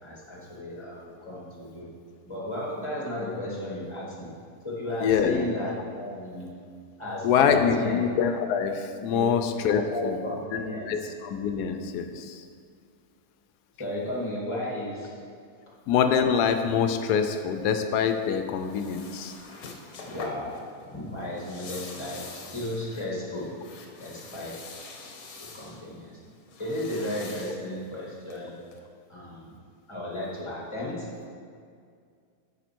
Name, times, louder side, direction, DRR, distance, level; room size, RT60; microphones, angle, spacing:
voice 1, 0.0-1.9 2.3-4.4 4.6-6.5 7.0-8.0 9.1-9.3 9.9-11.1 13.8-15.1 20.0-20.5 20.9-23.6 24.0-24.6 25.4-26.2 26.6-28.6 29.1-29.6 29.9-31.1, left 1 dB, 20° left, -5 dB, 2.0 m, -34 dB
voice 2, 5.0-5.4 7.2-10.2 10.5-10.6 10.9-12.4 15.9-19.3, left 7 dB, 85° left, 7 dB, 1.2 m, -25 dB
sound 1, 18.0-28.8, left 4 dB, 70° left, 1.3 m, -45 dB
9.2 x 5.8 x 4.5 m, 2.3 s
omnidirectional pair, 1.7 m